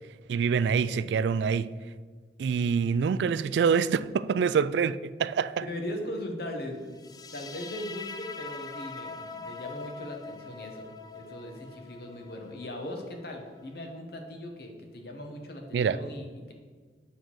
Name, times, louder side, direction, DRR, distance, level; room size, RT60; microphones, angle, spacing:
voice 1, 0.3-1.7 2.4-5.6 15.7-16.0, right 6 dB, 75° right, 0.3 m, -26 dB
voice 2, 5.6-16.5, left 1 dB, 55° left, 1.2 m, -39 dB
sound 1, 7.0-14.0, left 4 dB, 20° left, 0.4 m, -43 dB
8.5 x 3.9 x 6.2 m
head